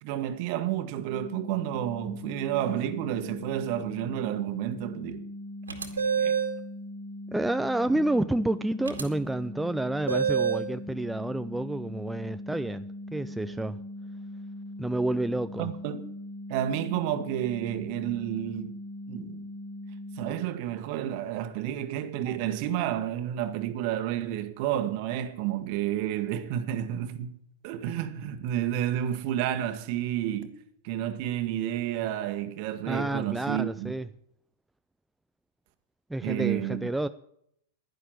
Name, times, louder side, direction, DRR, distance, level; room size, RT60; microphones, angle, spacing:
voice 1, 0.0-5.3 6.1-6.4 15.6-16.1 16.5-18.7 19.1-19.4 20.2-27.4 27.6-30.6 30.8-33.9 36.2-36.9, right 11 dB, 50° right, 1.5 m, -30 dB
sound 1, 1.1-20.4, left 1 dB, 30° left, 3.9 m, -41 dB
sound 2, 5.7-6.6 8.8-9.0 10.1-10.7, right 6 dB, 80° right, 2.0 m, -26 dB
voice 2, 7.3-12.9 13.1-13.8 14.8-15.7 32.9-34.1 36.1-37.1, right 1 dB, 5° right, 0.5 m, -29 dB
11.0 x 11.0 x 7.5 m
figure-of-eight pair, 100°, 0 cm